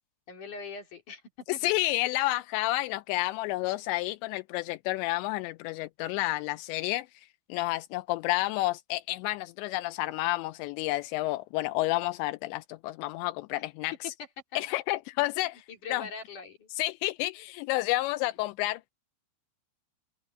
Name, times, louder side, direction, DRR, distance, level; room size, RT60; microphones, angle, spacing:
voice 1, 0.3-1.2 1.5-1.6 15.7-16.7, left 4 dB, 40° left, 5.5 m, -41 dB
voice 2, 1.5-13.9 14.6-15.7 15.9-16.1 16.8-18.9, left 18 dB, 80° left, 2.6 m, -30 dB
omnidirectional pair, 5.6 m